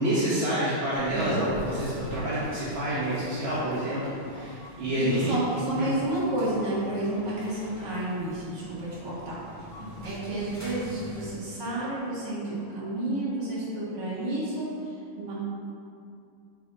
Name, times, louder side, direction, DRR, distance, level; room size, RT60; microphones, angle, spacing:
voice 1, 0.0-5.3 5.8-5.9, equal, 40° right, -10 dB, 1.1 m, -28 dB
sound 1, 0.9-11.3, left 1 dB, 10° right, 1.3 m, -42 dB
voice 2, 1.1-1.6 4.8-9.4 9.8-14.7 15.2-15.3, right 1 dB, 60° right, -8 dB, 2.3 m, -31 dB
7.4 x 4.1 x 4.0 m, 2.4 s
omnidirectional pair, 2.2 m